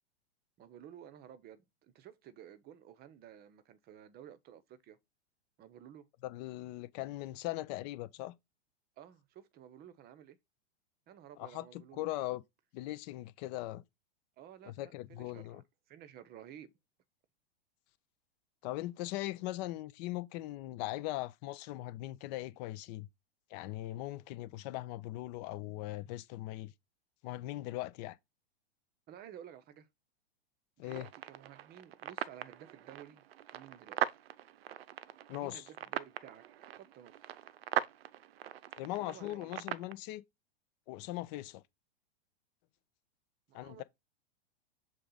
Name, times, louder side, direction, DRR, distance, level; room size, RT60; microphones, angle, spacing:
voice 1, 0.6-5.0 5.6-6.1 9.0-10.4 11.1-12.1 14.4-16.7 29.1-29.9 30.8-33.2 33.5-34.2 35.4-36.4 36.7-37.4 39.0-39.5 43.5-43.8, right 10 dB, 30° right, 0.8 m, -53 dB
voice 2, 6.2-8.3 11.4-12.4 12.7-13.8 14.7-15.6 18.6-23.1 23.5-26.7 27.2-28.2 30.8-31.1 35.3-35.7 38.8-40.2 40.9-41.6 43.5-43.8, left 16 dB, 40° left, 0.6 m, -40 dB
sound 1, 30.9-39.9, right 12 dB, 65° right, 0.7 m, -41 dB
6.6 x 3.6 x 3.9 m
hypercardioid pair, 110°, 32 cm